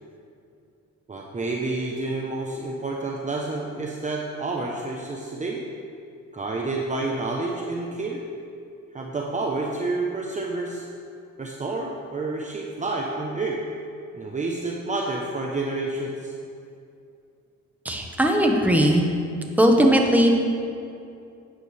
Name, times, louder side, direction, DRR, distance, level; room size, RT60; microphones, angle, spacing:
voice 1, 1.1-5.6 6.3-8.2 8.9-10.9 11.4-13.6 14.1-16.3, right 2 dB, 25° right, -1 dB, 1.0 m, -29 dB
voice 2, 17.8-19.0 19.6-20.3, equal, 5° right, 1 dB, 1.4 m, -18 dB
12.5 x 9.3 x 3.4 m, 2.5 s
cardioid pair, 90°, 30 cm